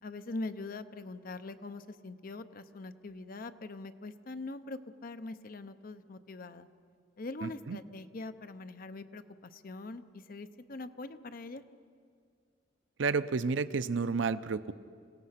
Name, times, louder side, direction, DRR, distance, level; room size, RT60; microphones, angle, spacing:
voice 1, 0.0-6.7 7.2-11.6, left 2 dB, 45° left, 10 dB, 0.6 m, -43 dB
voice 2, 7.4-7.8 13.0-14.7, right 4 dB, 70° right, 13 dB, 0.6 m, -31 dB
27.0 x 17.0 x 5.8 m, 2.2 s
head